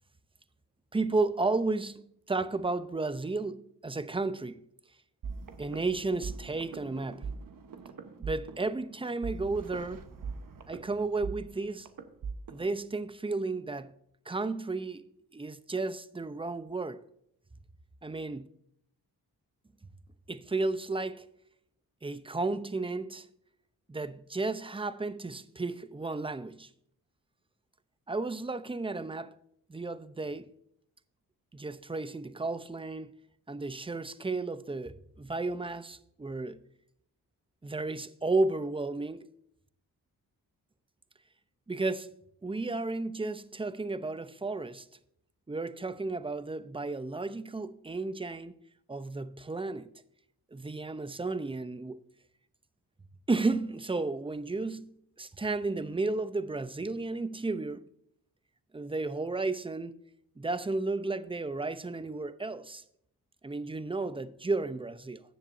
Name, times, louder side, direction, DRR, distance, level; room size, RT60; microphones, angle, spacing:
voice 1, 0.9-4.6 5.6-7.3 8.2-10.1 10.7-11.9 12.5-13.9 14.3-15.0 15.3-17.0 18.0-18.5 20.3-21.3 22.0-23.3 23.9-26.7 28.1-29.3 29.7-30.5 31.5-33.1 33.5-36.6 37.6-39.3 41.7-42.1 42.4-44.9 45.5-48.5 48.9-49.9 50.5-52.0 53.3-57.9 58.7-59.9 60.4-62.8 63.4-65.2, right 3 dB, 15° right, 0.6 m, -33 dB
sound 1, 5.2-12.8, right 5 dB, 60° right, 1.2 m, -42 dB
17.5 x 7.3 x 2.7 m
cardioid pair, 60°, 37 cm